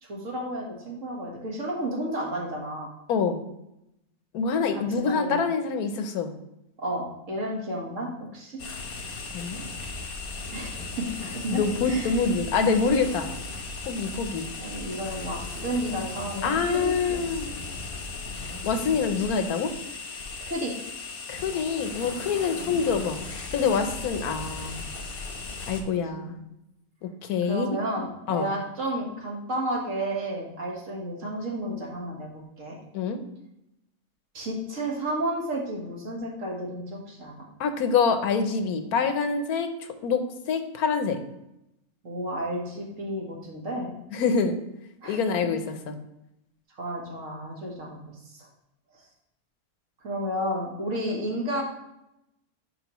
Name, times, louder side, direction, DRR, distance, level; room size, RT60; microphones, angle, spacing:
voice 1, 0.0-2.9 4.7-5.4 6.8-8.6 10.5-12.1 14.6-17.4 20.4-20.7 22.7-22.8 26.2-26.4 27.5-32.8 34.3-37.4 42.0-43.9 45.0-45.2 46.7-48.0 48.3-48.5 50.0-51.6, right 1 dB, 60° right, -2 dB, 1.8 m, -32 dB
voice 2, 3.1-3.4 4.3-6.3 9.3-9.6 11.5-13.3 13.9-14.5 16.4-17.5 18.6-19.7 21.3-23.2 23.5-25.0 25.7-26.4 27.0-27.8 28.3-28.5 32.9-33.2 37.6-39.7 40.0-41.2 44.1-44.6 45.1-46.0, left 5 dB, 85° left, 8 dB, 1.3 m, -26 dB
sound 1, 8.6-25.8, left 3 dB, 45° left, 1.0 m, -37 dB
10.5 x 4.4 x 3.0 m, 0.85 s
omnidirectional pair, 1.5 m